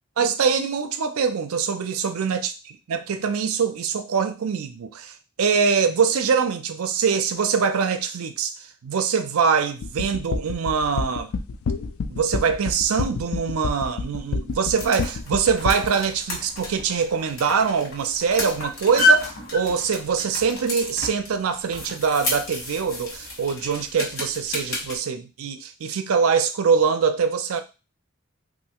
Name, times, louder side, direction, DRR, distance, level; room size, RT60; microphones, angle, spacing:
voice 1, 0.2-2.5 2.9-8.5 8.8-11.3 12.1-27.6, right 6 dB, 85° right, 0.4 m, -23 dB
sound 1, 9.8-15.9, left 4 dB, 85° left, 0.4 m, -28 dB
sound 2, 14.5-25.0, left 1 dB, 70° left, 1.3 m, -29 dB
3.2 x 2.6 x 2.8 m
head